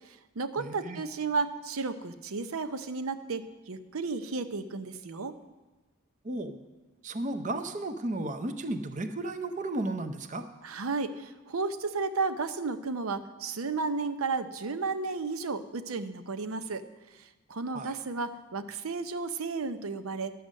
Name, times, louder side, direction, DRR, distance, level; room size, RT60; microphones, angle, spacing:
voice 1, 0.1-5.4 10.6-16.8 17.2-20.3, right 4 dB, 90° right, 11 dB, 0.7 m, -33 dB
voice 2, 0.6-1.0 6.2-6.6 7.0-10.4 17.7-17.9, right 2 dB, 35° right, 9 dB, 0.6 m, -34 dB
12.0 x 7.8 x 6.4 m, 1.2 s
head